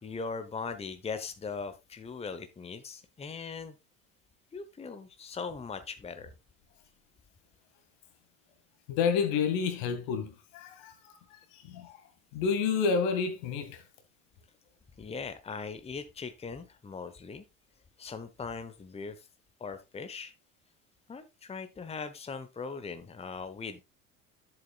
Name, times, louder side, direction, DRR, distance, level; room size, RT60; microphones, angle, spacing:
voice 1, 0.0-3.8 4.5-6.3 15.0-17.4 18.0-19.3 19.6-20.3 21.1-23.8, left 5 dB, 15° left, 0.9 m, -40 dB
voice 2, 8.9-10.9 11.5-12.0 12.3-13.8, left 6 dB, 60° left, 2.1 m, -29 dB
11.0 x 7.5 x 2.4 m
hypercardioid pair, 70°, 42 cm